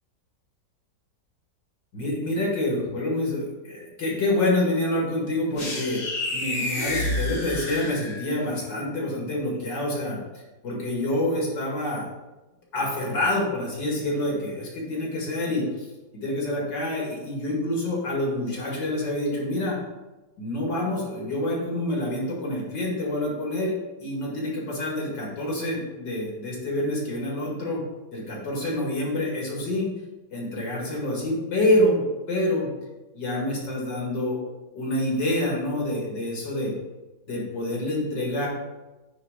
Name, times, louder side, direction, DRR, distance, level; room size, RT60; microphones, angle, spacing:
voice 1, 1.9-10.2 10.6-12.1 12.7-15.9 16.1-19.8 20.4-23.7 24.0-27.8 28.1-29.9 30.3-32.7 33.1-34.4 34.7-36.7 37.3-38.5, left 1 dB, 80° left, -3 dB, 2.6 m, -27 dB
sound 1, 5.6-8.5, left 1 dB, 35° left, 1.2 m, -29 dB
9.0 x 3.7 x 4.9 m, 1.1 s
omnidirectional pair, 1.9 m